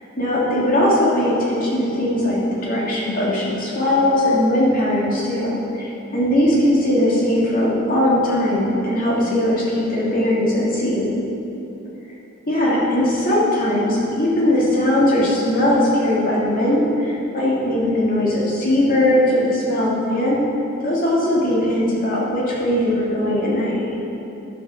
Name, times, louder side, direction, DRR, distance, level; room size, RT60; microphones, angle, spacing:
voice 1, 0.2-11.2 12.5-20.4 20.8-24.0, left 1 dB, 45° left, -6 dB, 2.8 m, -19 dB
11.0 x 7.9 x 6.6 m, 2.9 s
head